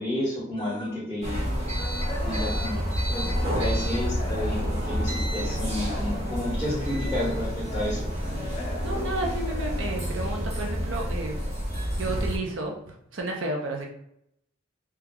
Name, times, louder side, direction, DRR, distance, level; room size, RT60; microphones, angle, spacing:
voice 1, 0.0-1.4 2.2-2.8 3.1-8.1, left 1 dB, 10° right, -9 dB, 1.1 m, -31 dB
sound 1, 0.5-1.0 1.4-3.6 3.9-11.1 11.5-11.7 12.2-12.3 12.7-12.8, left 2 dB, 25° left, 0.5 m, -40 dB
sound 2, 1.2-12.4, equal, 35° right, 0.9 m, -29 dB
voice 2, 8.8-11.3 12.0-13.9, right 2 dB, 60° right, 0 dB, 0.5 m, -32 dB
3.0 x 2.3 x 3.6 m, 0.75 s
head